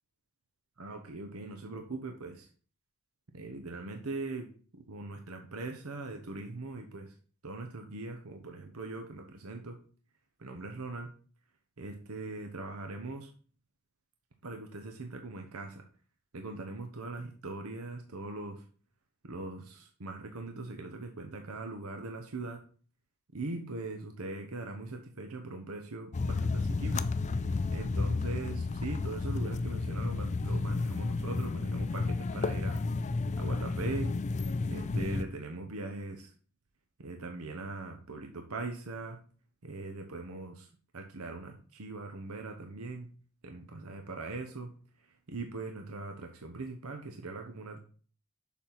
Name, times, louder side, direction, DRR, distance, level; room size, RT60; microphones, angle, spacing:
voice 1, 0.8-2.5 3.3-7.1 7.4-9.8 10.4-11.1 11.8-13.3 14.4-15.8 16.3-18.6 19.2-22.6 23.3-32.8 33.4-34.1 34.7-36.3 37.0-39.2 39.6-43.1 43.4-44.7 45.0-47.8, right 3 dB, 75° right, 5 dB, 0.9 m, -41 dB
sound 1, 26.1-35.2, left 3 dB, 35° left, 0.4 m, -32 dB
7.2 x 4.2 x 5.9 m, 0.42 s
head